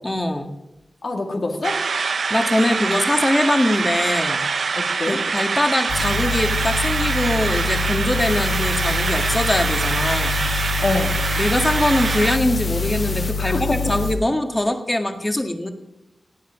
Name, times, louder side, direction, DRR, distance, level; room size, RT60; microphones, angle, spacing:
voice 1, 0.0-0.5 2.3-4.4 5.1-10.4 11.4-15.7, left 1 dB, 20° left, 6 dB, 1.7 m, -22 dB
voice 2, 1.0-1.8 4.8-5.2 10.8-11.2 13.4-13.8, left 2 dB, 60° left, 3 dB, 2.2 m, -25 dB
sound 1, 1.6-12.4, right 4 dB, 75° right, 0.7 m, -24 dB
sound 2, 5.9-14.1, left 4 dB, 85° left, 2.8 m, -25 dB
sound 3, 8.2-13.3, left 2 dB, 40° left, 1.5 m, -34 dB
17.5 x 9.4 x 6.0 m, 0.95 s
wide cardioid pair, 65°, 0 cm